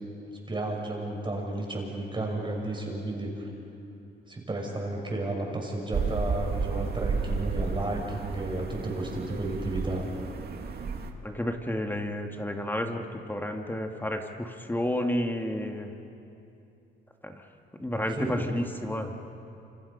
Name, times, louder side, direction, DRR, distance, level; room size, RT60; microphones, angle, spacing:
voice 1, 0.5-3.5 4.3-10.1 17.9-18.5, right 2 dB, 25° right, 0 dB, 6.1 m, -33 dB
sound 1, 5.9-11.1, right 5 dB, 55° right, 2.1 m, -32 dB
voice 2, 11.2-15.9 17.2-17.3 17.8-19.1, left 1 dB, 10° left, 4 dB, 2.0 m, -31 dB
28.0 x 27.5 x 5.7 m, 2.8 s
cardioid pair, 90°, 20 cm